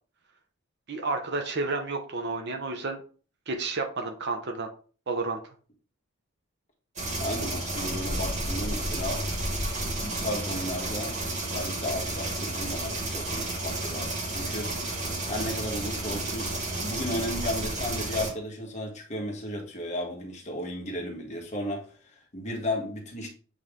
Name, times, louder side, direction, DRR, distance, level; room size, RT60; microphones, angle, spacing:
voice 1, 0.9-3.0 3.5-4.7 5.1-5.4, right 3 dB, 55° right, 0.8 m, -31 dB
sound 1, 7.0-18.3, right 2 dB, 35° right, 2.0 m, -31 dB
voice 2, 7.2-9.2 10.0-14.7 15.3-16.5 16.8-23.3, left 1 dB, 35° left, 1.5 m, -34 dB
7.7 x 3.3 x 3.7 m
head